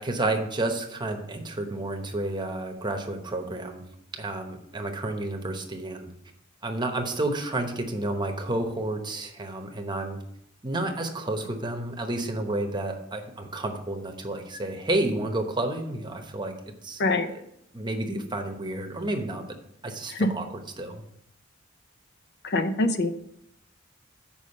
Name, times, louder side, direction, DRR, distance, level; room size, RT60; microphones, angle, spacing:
voice 1, 0.0-3.8 4.1-6.1 6.6-10.2 10.6-16.5 16.8-17.0 17.3-17.4 17.7-19.6 19.8-21.0, right 2 dB, 20° right, 4 dB, 1.0 m, -30 dB
voice 2, 22.4-23.1, left 2 dB, 55° left, 9 dB, 0.6 m, -24 dB
7.0 x 5.2 x 6.4 m, 0.75 s
head